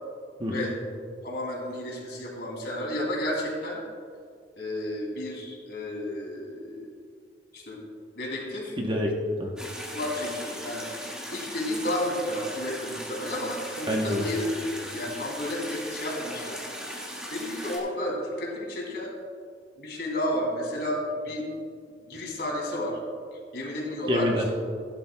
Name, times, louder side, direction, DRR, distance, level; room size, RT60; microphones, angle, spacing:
voice 1, 1.2-3.8 4.6-7.0 7.5-7.8 8.2-8.8 9.9-10.9 11.3-14.6 14.8-16.9 17.3-19.1 19.8-21.5 22.1-23.0 23.5-24.3, left 1 dB, 55° left, -2 dB, 2.6 m, -32 dB
voice 2, 8.8-9.5 13.9-14.3 24.1-24.5, left 1 dB, 25° right, 0 dB, 0.9 m, -27 dB
sound 1, 9.6-17.8, equal, 5° right, 1.6 m, -38 dB
15.5 x 11.5 x 2.2 m, 2.2 s
head